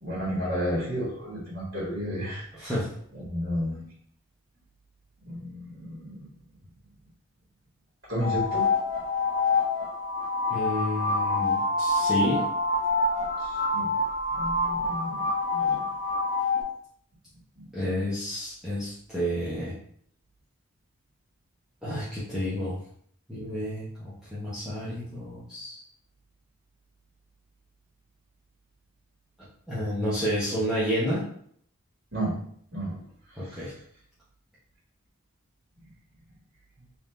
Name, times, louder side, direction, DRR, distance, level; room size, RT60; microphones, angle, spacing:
voice 1, 0.0-2.4 3.2-3.8 5.3-6.2 8.1-8.7 13.7-13.9 14.3-15.2 15.5-15.8 32.1-32.3 32.7-32.9, equal, 55° right, -7 dB, 1.5 m, -31 dB
sound 1, 8.2-16.6, left 2 dB, 35° left, 1.3 m, -26 dB
voice 2, 10.5-12.4 17.7-19.7 21.8-22.8 23.3-25.8 29.7-31.2 33.4-33.7, equal, 5° right, -12 dB, 0.8 m, -30 dB
3.5 x 2.7 x 3.2 m, 0.63 s
head